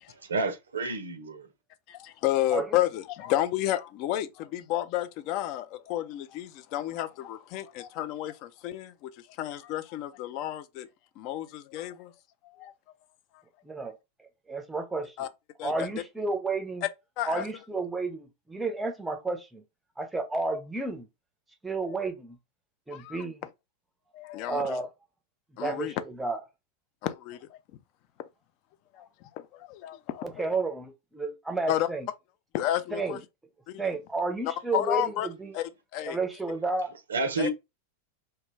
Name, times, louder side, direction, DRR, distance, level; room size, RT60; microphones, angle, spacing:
voice 1, 0.1-1.5 37.1-37.5, right 3 dB, 70° right, 0.5 m, -30 dB
voice 2, 1.9-9.1 9.4-10.9 11.2-12.1 12.4-12.7 15.2-15.3 15.6-15.9 16.8-16.9 17.2-17.5 21.7-22.0 22.9-23.2 24.1-24.8 25.6-25.9 27.0-27.6 28.9-30.4 31.7-31.9 32.5-33.2 33.7-33.8 34.4-35.3 35.5-36.2 37.4-37.5, left 13 dB, 45° left, 0.3 m, -31 dB
voice 3, 13.6-14.0 14.5-15.2 15.6-16.8 17.2-19.6 20.0-21.1 21.6-22.4 22.9-23.4 24.5-24.9 25.6-26.4 30.2-32.1 32.9-33.2 33.8-35.6 36.0-36.9, right 3 dB, 5° right, 0.6 m, -31 dB
2.2 x 2.2 x 3.2 m
figure-of-eight pair, 90°, 0 cm